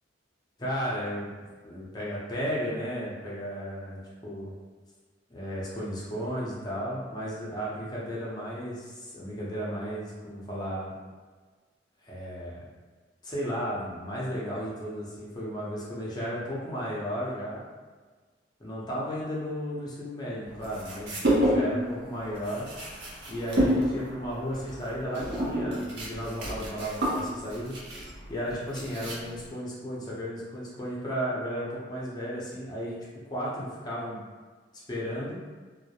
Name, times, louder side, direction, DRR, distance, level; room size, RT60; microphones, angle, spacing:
voice 1, 0.6-1.4 1.6-4.5 5.3-10.9 12.0-12.6 13.2-17.6 18.6-22.7 23.3-27.7 28.3-32.9 33.3-34.2 34.9-35.4, equal, 25° left, -6 dB, 0.6 m, -34 dB
sound 1, 20.6-21.9 22.2-29.5, equal, 65° right, 0.6 m, -29 dB
2.2 x 2.0 x 2.8 m, 1.4 s
head